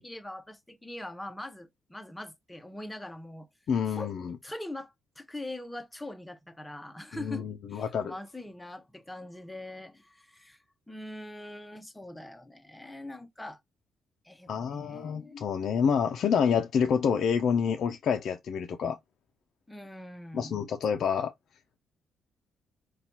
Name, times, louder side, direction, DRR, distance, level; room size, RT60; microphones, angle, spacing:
voice 1, 0.0-3.5 3.9-4.1 4.4-13.6 14.2-15.4 19.7-20.6, left 1 dB, 10° left, 0.7 m, -42 dB
voice 2, 3.7-4.3 7.2-8.1 14.5-19.0 20.3-21.3, left 7 dB, 65° left, 0.4 m, -28 dB
4.1 x 2.2 x 2.8 m
cardioid pair, 90°, 0 cm